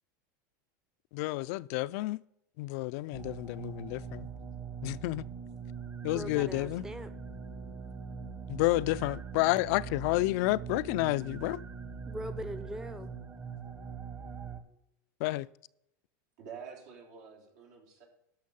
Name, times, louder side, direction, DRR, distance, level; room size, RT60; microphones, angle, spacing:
voice 1, 1.1-2.2 2.6-4.3 4.8-5.3 6.0-6.8 8.5-11.6 15.2-15.5, left 19 dB, 60° left, 0.4 m, -30 dB
sound 1, 3.1-14.6, right 6 dB, 25° right, 1.4 m, -42 dB
voice 2, 6.1-7.1 12.1-13.1, equal, 5° right, 0.6 m, -40 dB
voice 3, 16.4-18.1, right 6 dB, 75° right, 3.3 m, -48 dB
11.5 x 6.4 x 5.4 m
supercardioid pair, 120°, 10 cm